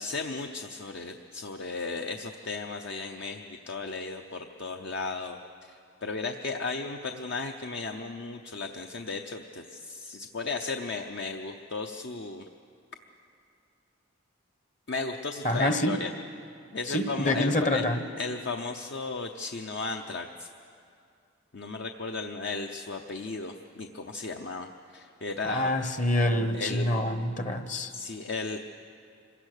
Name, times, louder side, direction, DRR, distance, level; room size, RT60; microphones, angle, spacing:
voice 1, 0.0-5.4 5.7-12.4 14.9-16.1 16.7-17.8 18.2-20.5 21.5-25.7 26.5-26.9 27.9-28.6, left 3 dB, 60° left, 4 dB, 0.8 m, -35 dB
voice 2, 15.4-16.0 16.9-18.0 25.4-27.9, left 1 dB, 40° left, 8 dB, 1.0 m, -26 dB
26.0 x 17.0 x 6.7 m, 2.4 s
head